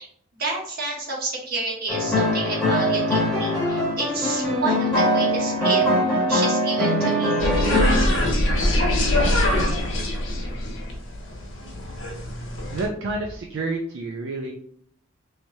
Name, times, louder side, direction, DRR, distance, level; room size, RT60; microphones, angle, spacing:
voice 1, 0.4-5.9 6.3-7.4, right 3 dB, 45° right, -3 dB, 1.1 m, -30 dB
sound 1, 1.9-8.1, equal, 5° left, 1.1 m, -22 dB
sound 2, 7.4-12.9, left 1 dB, 70° left, 1.0 m, -23 dB
voice 2, 12.7-14.5, right 2 dB, 65° right, 1 dB, 0.4 m, -29 dB
3.2 x 3.0 x 2.7 m, 0.63 s
head